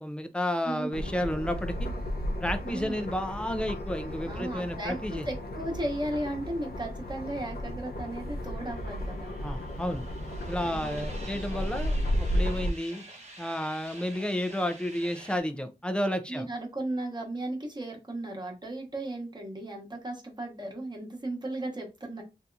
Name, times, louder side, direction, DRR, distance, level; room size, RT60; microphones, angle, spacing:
voice 1, 0.0-1.9 2.4-5.3 9.4-10.1 10.5-13.0 13.4-16.5, left 1 dB, 5° left, 0.5 m, -31 dB
voice 2, 0.6-1.1 2.6-3.1 4.2-9.4 10.6-11.2 16.3-22.2, right 1 dB, 25° right, 1.2 m, -36 dB
sound 1, 0.9-12.7, equal, 70° left, 0.7 m, -34 dB
sound 2, 8.3-15.4, right 1 dB, 40° right, 1.0 m, -49 dB
3.5 x 2.8 x 2.5 m
wide cardioid pair, 95°, 17 cm